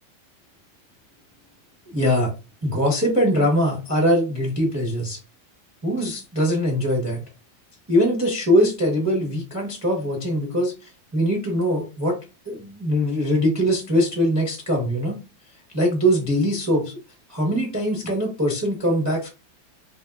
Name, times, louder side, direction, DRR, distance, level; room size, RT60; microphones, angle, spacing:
voice 1, 1.9-2.3 2.6-5.2 5.8-7.2 7.9-10.7 11.1-12.2 12.5-15.2 15.7-17.0 17.3-19.3, equal, 20° right, -1 dB, 0.4 m, -22 dB
3.4 x 3.1 x 2.3 m, 0.29 s
omnidirectional pair, 2.1 m